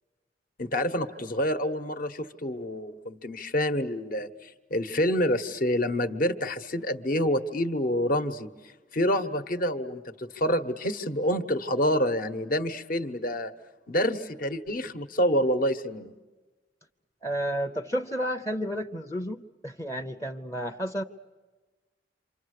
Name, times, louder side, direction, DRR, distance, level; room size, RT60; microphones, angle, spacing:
voice 1, 0.6-8.5 8.9-13.5 13.9-16.1, equal, 50° left, 8 dB, 1.2 m, -27 dB
voice 2, 17.2-21.0, equal, 15° left, 5 dB, 0.7 m, -31 dB
28.5 x 26.0 x 6.6 m, 1.3 s
head